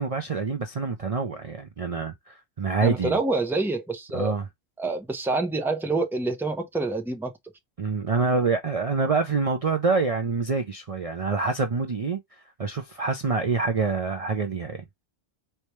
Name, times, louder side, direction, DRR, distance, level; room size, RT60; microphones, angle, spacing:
voice 1, 0.0-3.2 4.1-4.4 7.8-12.2 12.6-14.8, right 4 dB, 40° right, 0.6 m, -26 dB
voice 2, 2.8-4.4 4.8-7.3, right 3 dB, ahead, 0.7 m, -27 dB
4.2 x 3.4 x 3.0 m
omnidirectional pair, 1.1 m